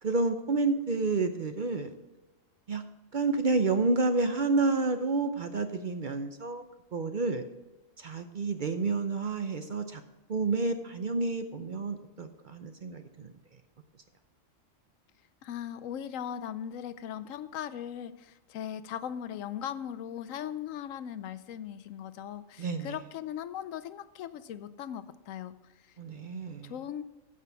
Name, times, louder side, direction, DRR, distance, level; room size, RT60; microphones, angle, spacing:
voice 1, 0.0-1.9 2.7-2.8 3.1-6.6 6.9-7.4 8.0-10.0 10.3-13.3 22.6-23.0 26.0-26.7, right 3 dB, 50° right, 7 dB, 0.7 m, -29 dB
voice 2, 15.4-25.5 25.8-25.9 26.6-27.0, left 9 dB, 80° left, 13 dB, 1.0 m, -39 dB
15.0 x 6.1 x 4.6 m, 1.1 s
omnidirectional pair, 1.3 m